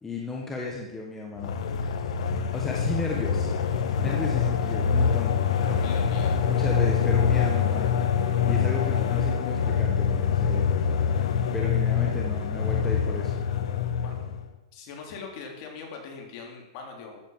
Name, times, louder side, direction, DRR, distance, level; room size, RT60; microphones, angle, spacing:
voice 1, 0.0-2.0 2.5-3.5 4.0-5.4 6.5-8.0 8.4-10.7 11.5-13.3, left 3 dB, 10° left, -1 dB, 1.5 m, -34 dB
sound 1, 1.4-14.5, left 7 dB, 65° left, 1.6 m, -25 dB
voice 2, 5.6-6.5 11.4-11.5 14.0-14.1 14.7-17.2, left 5 dB, 40° left, 1 dB, 3.8 m, -41 dB
13.5 x 8.8 x 7.5 m, 0.99 s
hypercardioid pair, 155°, 4 cm